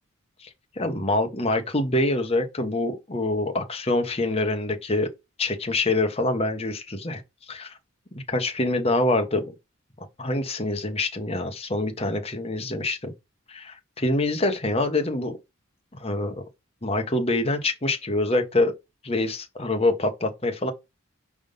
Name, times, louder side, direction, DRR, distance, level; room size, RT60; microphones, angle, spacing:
voice 1, 0.8-5.1 5.4-7.2 7.5-7.7 8.3-9.5 10.2-13.1 13.5-15.3 15.9-16.4 16.8-18.7 19.0-20.7, left 2 dB, 30° left, 1.1 m, -25 dB
5.2 x 3.6 x 5.3 m
head